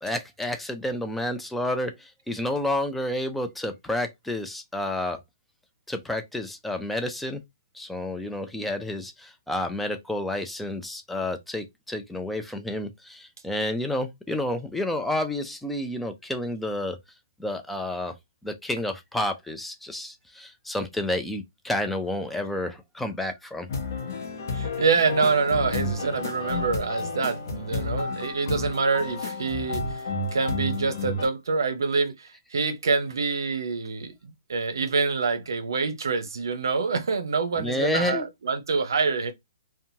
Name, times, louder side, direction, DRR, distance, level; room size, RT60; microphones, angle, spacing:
voice 1, 0.0-5.2 5.9-7.4 7.7-17.0 17.4-18.1 18.4-23.7 37.6-38.3, left 1 dB, 5° left, 0.3 m, -30 dB
sound 1, 23.7-31.3, left 3 dB, 55° left, 0.8 m, -31 dB
voice 2, 24.5-30.0 30.3-39.3, right 4 dB, 85° right, 0.7 m, -26 dB
2.8 x 2.2 x 2.7 m
hypercardioid pair, 150°, 2 cm